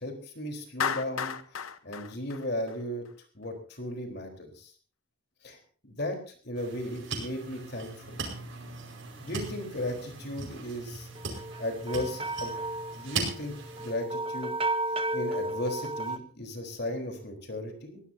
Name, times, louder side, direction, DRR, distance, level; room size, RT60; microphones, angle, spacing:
voice 1, 0.0-3.0 3.3-4.7 5.4-6.2 6.4-8.2 9.2-11.1 11.6-12.5 12.9-14.6 15.1-18.1, left 1 dB, 50° left, 4 dB, 4.0 m, -36 dB
Clapping, 0.8-3.1, left 7 dB, 85° left, 1.1 m, -33 dB
sound 1, 6.5-13.9, right 4 dB, 65° right, 5.3 m, -39 dB
sound 2, 11.1-16.2, right 2 dB, 25° right, 0.8 m, -33 dB
23.0 x 16.5 x 2.8 m, 0.42 s
head